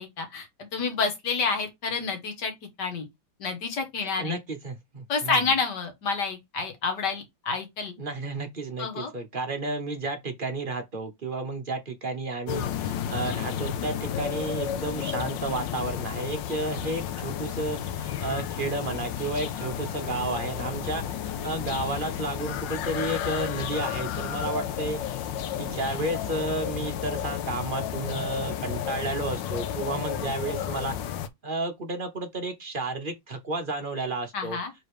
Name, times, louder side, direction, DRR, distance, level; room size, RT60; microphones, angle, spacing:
voice 1, 0.0-2.5 2.8-3.1 3.4-4.4 5.1-7.9 8.8-9.1 34.3-34.7, left 4 dB, 65° left, 2.1 m, -29 dB
voice 2, 4.2-5.4 8.0-21.0 21.4-25.0 25.6-30.9 31.4-34.6, right 2 dB, 40° right, 0.8 m, -32 dB
sound 1, 12.5-31.3, left 9 dB, 85° left, 1.4 m, -32 dB
5.0 x 4.0 x 4.8 m
omnidirectional pair, 2.0 m